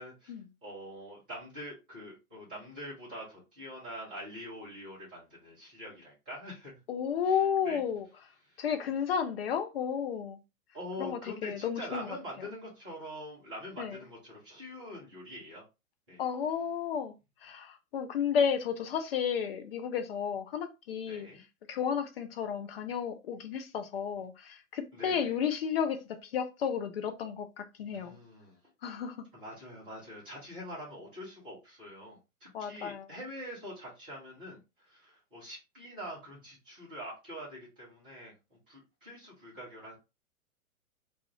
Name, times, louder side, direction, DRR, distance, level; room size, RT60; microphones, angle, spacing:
voice 1, 0.0-6.8 7.2-7.8 8.5-8.6 10.7-15.6 16.1-16.2 21.1-21.4 24.9-25.3 27.9-28.6 29.3-40.0, equal, 10° right, 0.3 m, -45 dB
voice 2, 6.9-8.1 8.6-10.4 11.0-12.2 13.8-14.0 16.2-17.1 17.4-21.3 21.7-28.2 28.8-29.3 32.5-33.1, left 7 dB, 45° left, 0.5 m, -32 dB
2.3 x 2.2 x 2.8 m
figure-of-eight pair, 110°, 44 cm